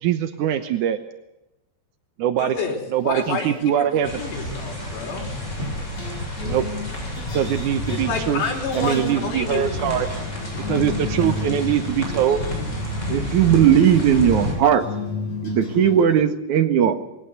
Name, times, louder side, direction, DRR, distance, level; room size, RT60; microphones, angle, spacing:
voice 1, 0.0-1.0 2.2-2.6 2.9-4.1 6.4-6.7 7.3-8.4 8.7-10.1 10.7-12.4, right 10 dB, 75° right, 9 dB, 1.9 m, -22 dB
voice 2, 2.4-2.8 3.0-5.3 7.9-9.7, left 4 dB, 85° left, 1 dB, 7.0 m, -29 dB
sound 1, 3.0-3.6 4.6-16.2, left 4 dB, 40° left, 6.6 m, -34 dB
sound 2, 4.0-14.5, left 1 dB, 15° left, 8.1 m, -30 dB
voice 3, 13.1-14.8 15.4-16.9, right 9 dB, 55° right, 8 dB, 2.6 m, -17 dB
21.5 x 17.5 x 8.1 m, 0.96 s
omnidirectional pair, 4.9 m